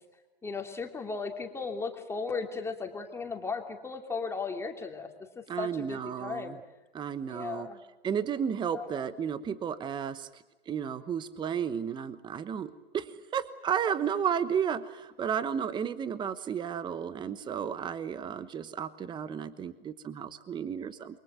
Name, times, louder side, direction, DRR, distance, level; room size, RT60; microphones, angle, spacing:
voice 1, 0.4-5.1 5.4-6.6 7.3-7.8 8.7-8.9, left 4 dB, 10° left, 4 dB, 2.9 m, -36 dB
voice 2, 5.5-6.6 6.9-7.7 8.0-21.2, right 8 dB, 15° right, 15 dB, 1.1 m, -33 dB
29.0 x 23.5 x 8.1 m, 1.1 s
hypercardioid pair, 130°, 29 cm